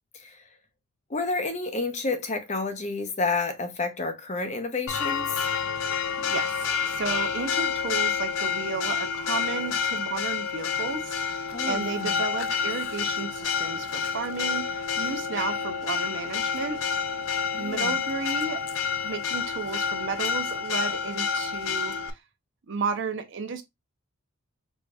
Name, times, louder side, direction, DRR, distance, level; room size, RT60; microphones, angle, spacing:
voice 1, 1.1-5.5 11.5-12.2 17.5-18.0, left 3 dB, 35° left, 0.7 m, -30 dB
Church bell, 4.9-22.1, left 6 dB, 65° left, 0.4 m, -29 dB
voice 2, 6.2-16.8 17.5-18.6 19.0-22.2 22.7-23.6, right 5 dB, 55° right, 0.6 m, -33 dB
4.9 x 2.7 x 2.3 m
head